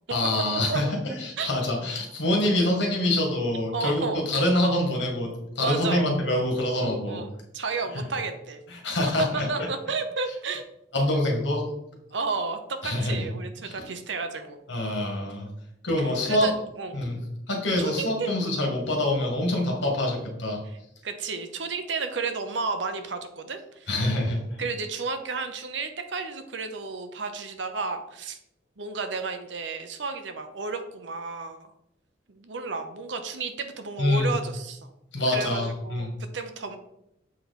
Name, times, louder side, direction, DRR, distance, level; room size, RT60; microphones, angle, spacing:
voice 1, 0.1-5.3 5.6-7.2 7.9-8.0 8.7-9.5 10.9-11.6 12.8-13.3 13.6-13.9 14.7-15.5 15.8-16.5 16.9-17.2 17.5-20.6 23.9-24.6 34.0-34.4 35.1-36.1, left 1 dB, 70° left, 0 dB, 2.0 m, -25 dB
voice 2, 3.7-4.3 5.6-6.1 7.1-7.3 7.5-8.6 9.5-10.7 12.1-14.6 16.0-17.0 17.8-18.3 20.7-20.8 21.0-23.9 24.6-28.4 28.8-31.7 32.3-34.9 35.3-36.8, right 4 dB, 75° right, 7 dB, 0.9 m, -32 dB
7.4 x 4.6 x 4.3 m, 0.80 s
head